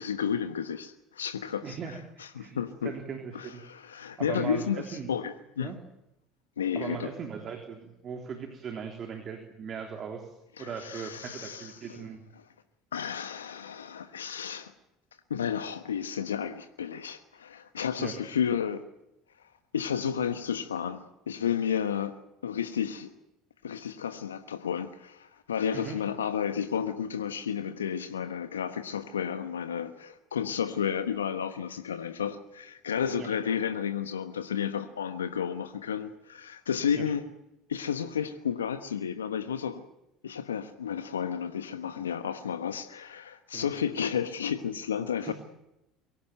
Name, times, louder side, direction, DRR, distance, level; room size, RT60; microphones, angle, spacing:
voice 1, 0.0-2.9 3.3-5.7 6.6-7.1 10.6-12.0 12.9-14.7 15.3-18.8 19.7-22.2 22.4-23.1 23.6-37.2 37.7-39.8 40.2-45.3, left 8 dB, 80° left, 1.1 m, -32 dB
voice 2, 1.6-3.6 4.2-5.1 5.6-5.8 6.8-12.2 18.0-18.2 25.7-26.0 33.2-33.3 36.9-37.1 43.5-43.7 45.2-45.3, right 6 dB, 40° right, 3.5 m, -39 dB
23.5 x 17.0 x 9.1 m
figure-of-eight pair, 65°, 0 cm